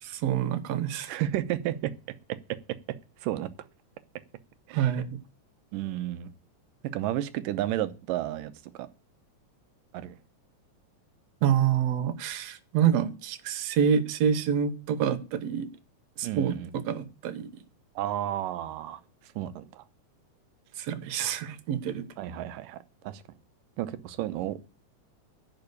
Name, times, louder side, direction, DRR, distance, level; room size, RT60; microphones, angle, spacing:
voice 1, 0.0-1.2 4.7-5.2 11.4-15.7 16.2-17.6 20.8-22.1, right 8 dB, 65° right, 2.0 m, -27 dB
voice 2, 1.1-1.9 3.2-3.5 4.7-4.9 5.7-6.3 6.9-8.5 8.8-8.9 9.9-10.2 16.2-16.7 18.0-19.0 19.4-19.8 22.2-23.2 23.8-24.6, right 13 dB, 85° right, 2.5 m, -32 dB
10.5 x 5.5 x 8.3 m
omnidirectional pair, 3.8 m